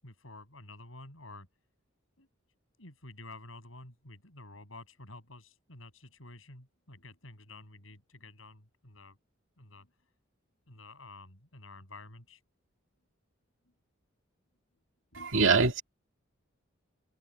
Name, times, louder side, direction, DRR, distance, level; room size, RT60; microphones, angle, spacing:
voice 1, 0.0-1.5 2.2-2.3 2.8-9.2 9.6-9.9 10.7-12.4 15.1-15.8, left 2 dB, 75° left, 7.7 m, -50 dB
voice 2, 15.2-15.8, right 4 dB, 70° right, 2.2 m, -23 dB
head